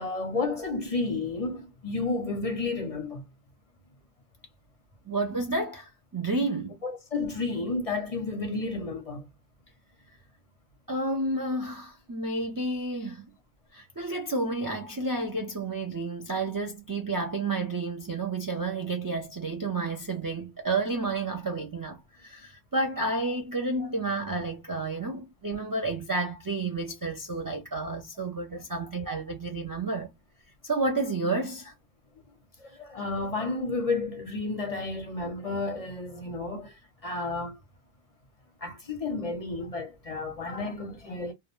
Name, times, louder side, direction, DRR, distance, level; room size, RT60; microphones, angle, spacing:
voice 1, 0.0-3.2 6.8-9.3 23.8-23.9 28.5-28.6 32.6-37.6 38.6-41.3, left 3 dB, 45° left, 0.6 m, -32 dB
voice 2, 5.1-6.8 10.9-13.3 13.7-30.1 30.6-31.7, right 2 dB, 35° right, 0.3 m, -31 dB
2.3 x 2.0 x 2.9 m
omnidirectional pair, 1.0 m